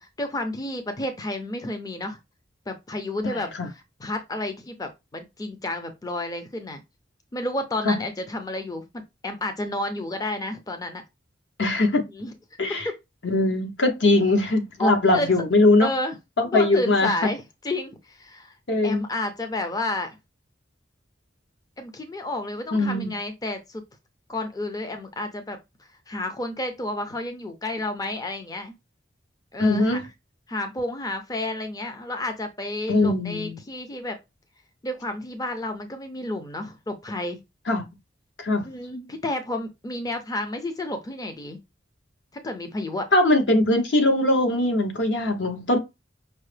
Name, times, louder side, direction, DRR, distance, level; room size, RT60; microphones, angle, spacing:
voice 1, 0.0-2.2 2.7-3.5 4.0-6.8 7.3-11.0 12.1-12.3 12.8-13.0 14.8-15.3 15.8-16.2 16.4-18.6 18.8-20.2 21.8-23.8 24.3-25.6 26.1-28.7 29.5-30.0 30.5-34.2 34.8-37.4 38.6-41.6 42.4-43.1, left 1 dB, 20° left, 0.4 m, -31 dB
voice 2, 3.2-3.7 7.8-8.0 11.6-12.0 12.6-12.9 13.2-15.9 16.4-17.1 18.7-19.0 22.7-23.2 29.6-30.0 32.9-33.6 37.7-37.8 38.4-38.7 43.1-45.8, left 2 dB, 70° left, 0.9 m, -21 dB
5.4 x 2.0 x 3.2 m
head